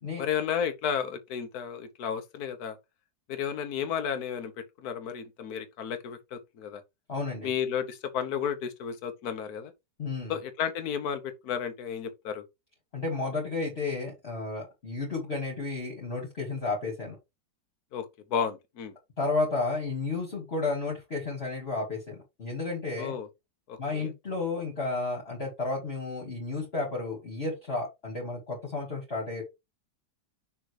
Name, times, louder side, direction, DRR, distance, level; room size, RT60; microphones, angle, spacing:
voice 1, 0.2-2.8 3.3-6.8 7.4-9.7 10.3-12.4 17.9-18.9 23.0-23.3 23.7-24.1, left 8 dB, 60° left, 1.5 m, -33 dB
voice 2, 7.1-7.5 10.0-10.3 12.9-17.2 19.2-23.1 23.8-29.4, left 3 dB, 35° left, 2.5 m, -32 dB
6.4 x 3.8 x 4.8 m
omnidirectional pair, 1.9 m